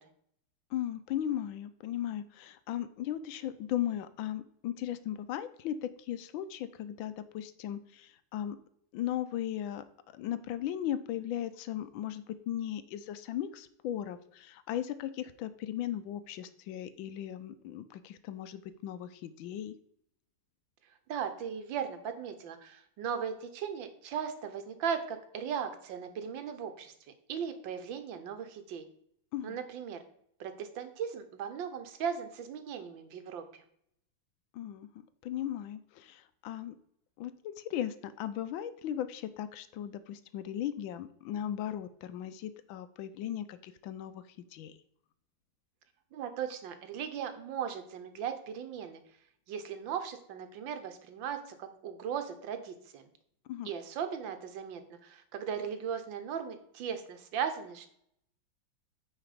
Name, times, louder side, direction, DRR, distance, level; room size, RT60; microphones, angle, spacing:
voice 1, 0.7-8.6 8.9-9.8 10.1-19.7 29.3-29.6 34.5-36.7 37.2-44.2 44.5-44.8 53.5-53.7, left 11 dB, 85° left, 12 dB, 1.4 m, -37 dB
voice 2, 21.1-26.9 27.3-28.8 29.4-30.0 30.4-33.4 46.1-49.0 49.5-53.1 53.6-57.9, right 7 dB, 75° right, 8 dB, 1.6 m, -37 dB
9.0 x 4.1 x 5.0 m, 0.69 s
omnidirectional pair, 2.1 m